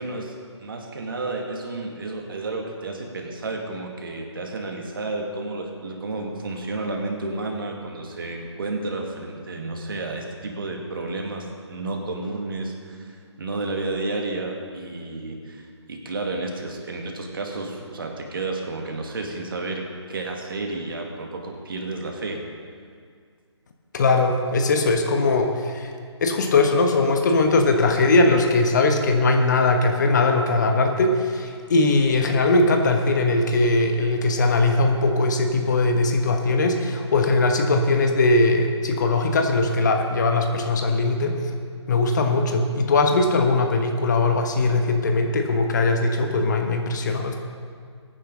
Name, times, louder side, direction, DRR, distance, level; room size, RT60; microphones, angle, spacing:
voice 1, 0.0-22.4, right 2 dB, 45° right, 2 dB, 2.0 m, -31 dB
voice 2, 23.9-25.9 26.2-41.4 41.9-47.4, left 3 dB, 40° left, 4 dB, 1.3 m, -20 dB
22.0 x 9.5 x 3.9 m, 2.1 s
figure-of-eight pair, 145°, 15 cm